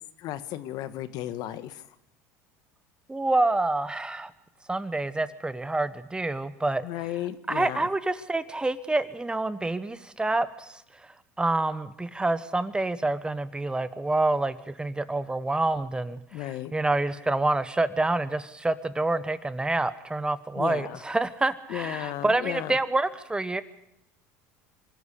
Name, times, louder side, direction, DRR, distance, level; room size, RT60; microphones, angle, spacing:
voice 1, 0.2-1.9 6.8-7.9 16.3-16.7 20.6-21.0 21.7-22.8, left 13 dB, 60° left, 13 dB, 1.4 m, -34 dB
voice 2, 3.1-4.3 4.7-6.9 7.5-11.1 11.4-23.6, right 2 dB, 10° right, 14 dB, 1.1 m, -27 dB
25.0 x 13.5 x 8.4 m, 0.80 s
supercardioid pair, 95°, 8 cm